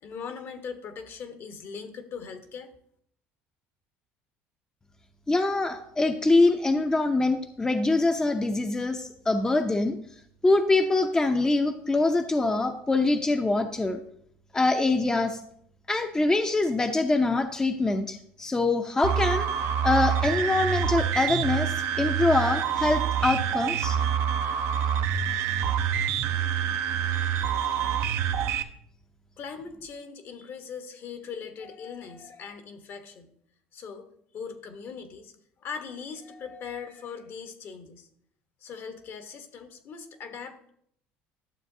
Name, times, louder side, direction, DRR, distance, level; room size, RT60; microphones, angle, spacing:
voice 1, 0.0-2.7 29.4-33.3 33.7-34.1 34.3-35.3 35.6-38.1 38.6-40.7, left 6 dB, 50° left, 7 dB, 1.1 m, -40 dB
voice 2, 5.3-10.0 10.4-14.0 14.5-15.4 15.9-19.5 19.8-24.0, left 2 dB, 15° left, 5 dB, 0.6 m, -24 dB
sound 1, 19.0-28.6, right 8 dB, 65° right, 0.6 m, -26 dB
12.0 x 7.0 x 2.7 m, 0.67 s
supercardioid pair, 100°, 5 cm